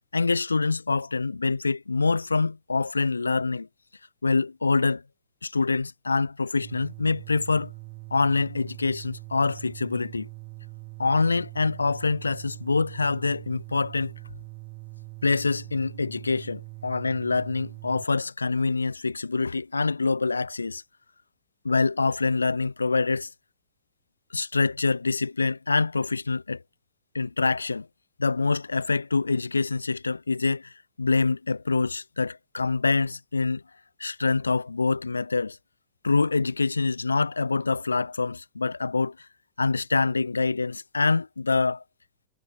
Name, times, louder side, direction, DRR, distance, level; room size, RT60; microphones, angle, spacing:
voice 1, 0.1-3.7 4.2-5.0 5.4-7.7 8.1-10.3 11.0-14.1 15.2-20.8 21.6-23.3 24.3-26.6 27.1-27.9 28.2-33.6 34.0-35.6 36.0-39.2 39.6-41.8, left 4 dB, 80° left, 4.5 m, -25 dB
sound 1, 6.6-18.0, right 32 dB, 45° right, 7.4 m, -43 dB
figure-of-eight pair, 90°, 0 cm